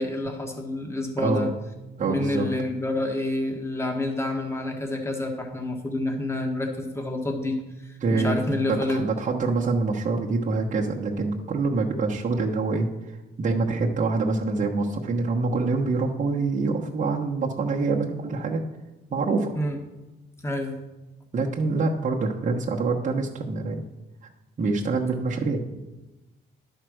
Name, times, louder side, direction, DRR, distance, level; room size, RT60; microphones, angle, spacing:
voice 1, 0.0-1.5 2.1-7.6 7.8-9.0 19.5-19.8 20.4-20.8, left 2 dB, 15° left, 2 dB, 1.5 m, -28 dB
voice 2, 1.2-1.5 2.0-2.5 8.0-8.3 8.7-18.6 19.1-19.5 21.3-23.8 24.6-25.6, right 3 dB, 40° right, -3 dB, 1.1 m, -25 dB
10.5 x 4.6 x 6.3 m, 1.1 s
cardioid pair, 90°, 20 cm